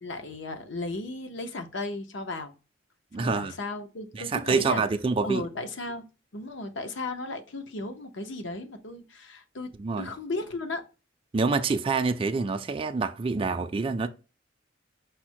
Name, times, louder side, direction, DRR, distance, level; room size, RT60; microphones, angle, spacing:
voice 1, 0.0-2.6 3.2-4.8 5.2-6.0 6.3-10.8, left 2 dB, 70° left, 0.7 m, -35 dB
voice 2, 3.1-3.5 4.1-5.4 9.8-10.1 11.3-14.1, right 4 dB, 30° right, 0.4 m, -27 dB
5.0 x 2.1 x 4.4 m
head